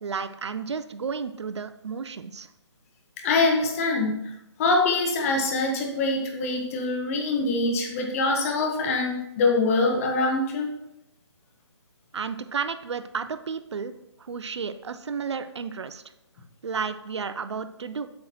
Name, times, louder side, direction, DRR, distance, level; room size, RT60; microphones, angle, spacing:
voice 1, 0.0-2.5 12.1-13.9 14.2-16.0 16.6-18.1, right 6 dB, 70° right, 11 dB, 0.6 m, -32 dB
voice 2, 3.2-4.1 4.6-10.7, left 3 dB, 30° left, 1 dB, 1.4 m, -24 dB
8.2 x 6.4 x 3.0 m, 0.86 s
hypercardioid pair, 150°, 15 cm